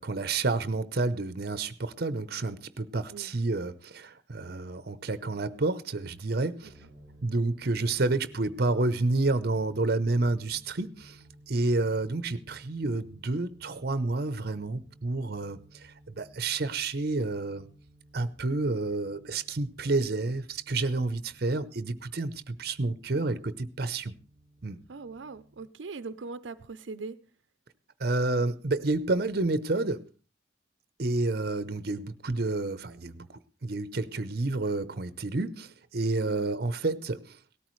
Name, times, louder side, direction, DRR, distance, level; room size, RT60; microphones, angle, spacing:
voice 1, 0.0-6.7 7.2-11.2 11.5-17.7 18.1-24.1 24.6-24.8 28.0-30.0 31.0-37.4, right 2 dB, 55° right, 0.8 m, -29 dB
sound 1, 6.6-25.6, right 1 dB, 25° left, 6.0 m, -56 dB
voice 2, 24.9-27.2 36.3-36.5, right 4 dB, 85° right, 0.6 m, -40 dB
18.0 x 13.5 x 3.1 m
head